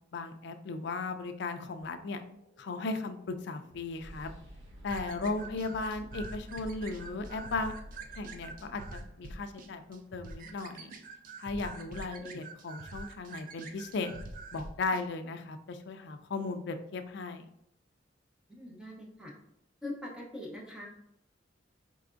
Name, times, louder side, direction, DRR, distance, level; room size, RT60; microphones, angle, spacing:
voice 1, 0.1-2.2 2.6-4.3 4.8-7.7 8.2-10.9 11.4-14.1 14.5-17.5, left 3 dB, 65° left, 7 dB, 0.4 m, -36 dB
sound 1, 2.3-9.9, equal, 90° right, 1.2 m, -51 dB
sound 2, 4.9-15.0, right 3 dB, 50° right, 0.4 m, -46 dB
voice 2, 5.4-5.8 12.2-12.4 18.5-19.3 19.8-20.9, left 1 dB, 5° right, -2 dB, 0.8 m, -43 dB
4.6 x 3.3 x 2.5 m, 0.77 s
head